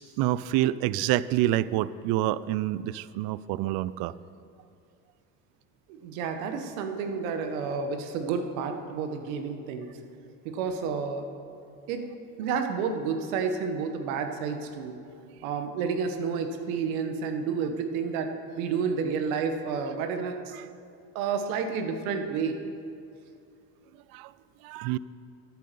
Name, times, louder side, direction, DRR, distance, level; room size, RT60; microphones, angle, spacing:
voice 1, 0.0-4.1 24.1-24.3 24.6-25.0, right 14 dB, 60° right, 18 dB, 0.5 m, -27 dB
voice 2, 5.9-9.9 10.4-11.3 11.9-12.0 12.4-15.0 15.4-18.3 18.6-20.5 21.1-22.6, right 5 dB, 85° right, 6 dB, 1.4 m, -30 dB
12.0 x 9.5 x 6.9 m, 2.6 s
supercardioid pair, 95°, 41 cm